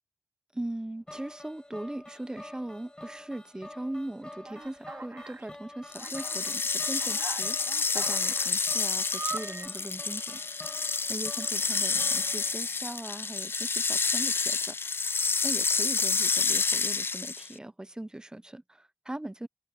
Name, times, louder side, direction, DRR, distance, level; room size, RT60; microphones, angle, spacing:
voice 1, 0.5-7.6 7.9-10.4 11.1-15.1 15.4-19.5, right 1 dB, 15° right, 0.7 m, -39 dB
sound 1, 1.1-13.3, left 1 dB, 20° left, 5.4 m, -48 dB
Alarm, 4.5-5.5 6.0-6.5 7.0-8.6 9.1-9.7, right 4 dB, 55° right, 2.9 m, -41 dB
sound 2, 5.9-17.5, left 4 dB, 60° left, 0.4 m, -29 dB
wide cardioid pair, 90°, 4 cm